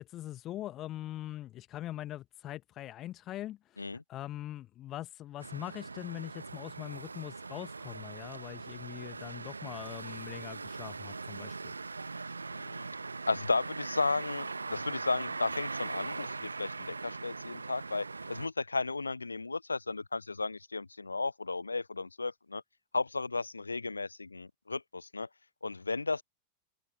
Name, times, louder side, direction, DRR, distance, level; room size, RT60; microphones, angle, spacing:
voice 1, 0.0-11.7, left 13 dB, 35° left, 1.3 m, -42 dB
sound 1, 5.4-18.5, right 4 dB, 80° right, 1.4 m, -41 dB
voice 2, 12.5-12.9 13.3-22.6 22.9-25.3 25.6-26.2, left 3 dB, 80° left, 0.3 m, -34 dB
open air
figure-of-eight pair, 90°, 0 cm